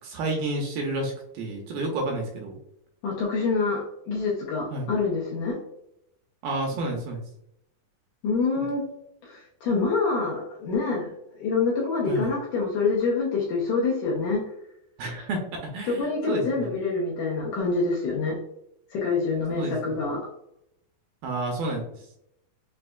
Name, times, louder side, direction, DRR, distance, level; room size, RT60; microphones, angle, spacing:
voice 1, 0.0-2.6 4.7-4.9 6.4-7.2 8.6-8.7 12.1-12.3 15.0-16.7 19.6-20.1 21.2-22.1, right 2 dB, 80° right, 1 dB, 2.3 m, -31 dB
voice 2, 3.0-5.6 8.2-8.8 9.2-14.4 15.9-18.4 18.9-20.2, left 4 dB, 75° left, -4 dB, 1.9 m, -26 dB
6.0 x 2.4 x 2.2 m, 0.78 s
omnidirectional pair, 4.4 m